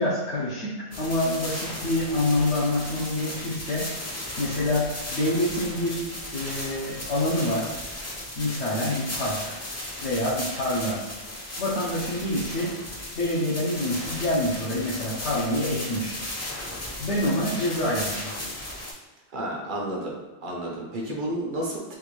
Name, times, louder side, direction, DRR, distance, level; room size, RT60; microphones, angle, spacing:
voice 1, 0.0-3.9 4.4-7.7 8.4-9.5 10.0-11.0 11.6-12.8 13.1-16.2 17.0-18.4, left 1 dB, 85° left, -8 dB, 1.0 m, -27 dB
sound 1, 0.9-18.9, left 1 dB, 25° left, 0.4 m, -35 dB
voice 2, 19.3-22.0, right 1 dB, 55° right, -2 dB, 0.8 m, -31 dB
3.6 x 2.5 x 3.0 m, 1.2 s
omnidirectional pair, 1.1 m